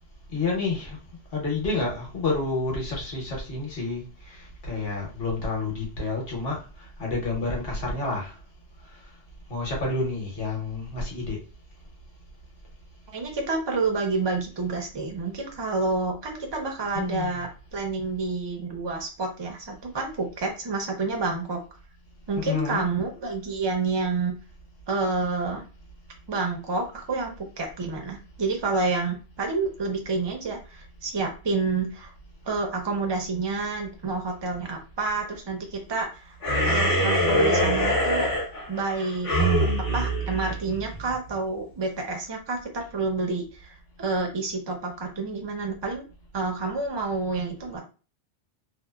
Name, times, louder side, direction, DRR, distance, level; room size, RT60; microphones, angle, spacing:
voice 1, 0.3-1.0 1.3-4.4 4.7-6.6 7.0-8.3 9.5-11.4 16.9-17.4 22.4-22.9, left 3 dB, 55° left, -1 dB, 1.1 m, -29 dB
voice 2, 13.1-21.6 22.3-24.4 24.9-25.6 26.3-32.1 32.5-36.4 36.6-38.3 38.7-39.7 39.9-46.0 46.3-47.8, right 3 dB, 45° right, 2 dB, 0.3 m, -29 dB
sound 1, 36.4-41.1, equal, 35° left, 0.6 m, -24 dB
2.7 x 2.0 x 2.2 m, 0.34 s
omnidirectional pair, 1.2 m